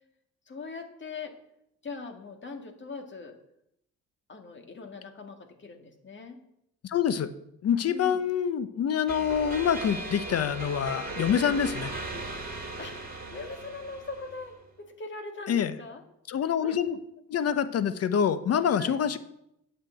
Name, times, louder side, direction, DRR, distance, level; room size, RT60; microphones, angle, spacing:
voice 1, 0.5-1.3 1.8-3.4 4.3-6.4 7.8-8.2 12.8-16.0 16.6-16.8 18.8-19.0, left 4 dB, 40° left, 5 dB, 1.9 m, -41 dB
voice 2, 6.8-7.3 7.6-11.9 15.5-15.7 16.3-17.0 17.3-19.2, left 8 dB, 55° left, 13 dB, 0.9 m, -26 dB
sound 1, 9.1-14.6, right 2 dB, 30° right, 2.7 m, -38 dB
9.0 x 6.7 x 7.9 m, 0.80 s
cardioid pair, 90°, 30 cm